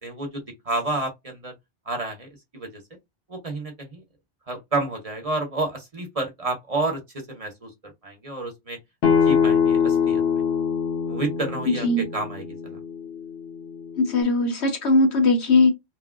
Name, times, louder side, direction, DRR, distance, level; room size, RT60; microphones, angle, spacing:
voice 1, 0.0-1.5 1.9-2.8 3.3-4.0 4.5-7.7 8.0-8.8 9.2-10.2 11.1-11.9 12.1-12.8, right 2 dB, 35° right, 0.9 m, -30 dB
Acoustic guitar, 9.0-14.2, left 7 dB, 60° left, 0.9 m, -24 dB
voice 2, 11.7-12.0 14.0-15.7, left 2 dB, 85° left, 1.2 m, -19 dB
3.1 x 2.6 x 2.4 m
omnidirectional pair, 1.1 m